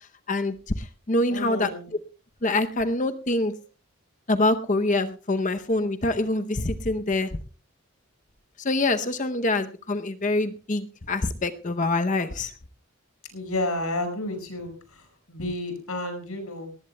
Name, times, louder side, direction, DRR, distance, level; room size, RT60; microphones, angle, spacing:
voice 1, 0.3-1.7 2.4-3.5 4.3-7.3 8.6-12.5, left 2 dB, 35° left, 9 dB, 0.7 m, -25 dB
voice 2, 1.3-1.9 13.3-14.7 15.3-16.7, left 2 dB, 85° left, 6 dB, 5.6 m, -30 dB
19.0 x 19.0 x 2.2 m, 0.37 s
head